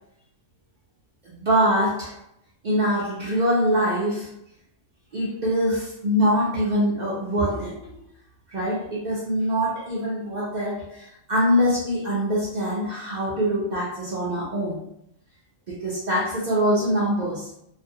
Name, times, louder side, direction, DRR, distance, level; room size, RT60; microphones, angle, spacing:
voice 1, 1.2-2.2 2.6-4.3 5.1-7.9 8.5-14.8 15.7-17.5, equal, 60° right, -6 dB, 0.4 m, -24 dB
2.4 x 2.1 x 2.7 m, 0.76 s
omnidirectional pair, 1.5 m